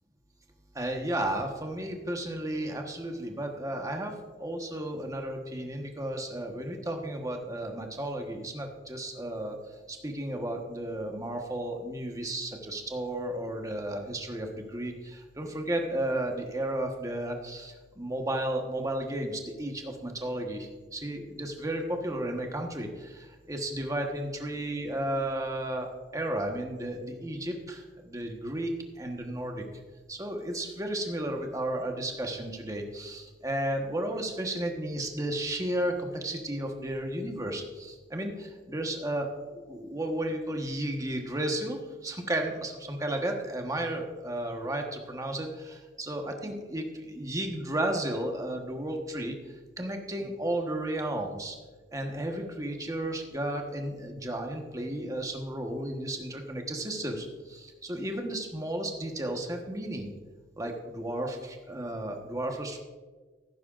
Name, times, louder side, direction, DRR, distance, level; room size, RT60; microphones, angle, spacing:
voice 1, 0.7-9.6 9.9-28.7 29.0-29.6 30.1-49.4 49.8-51.6 51.9-60.1 60.6-62.8, right 1 dB, 20° right, 2 dB, 1.3 m, -33 dB
16.5 x 9.4 x 2.5 m, 1.3 s
head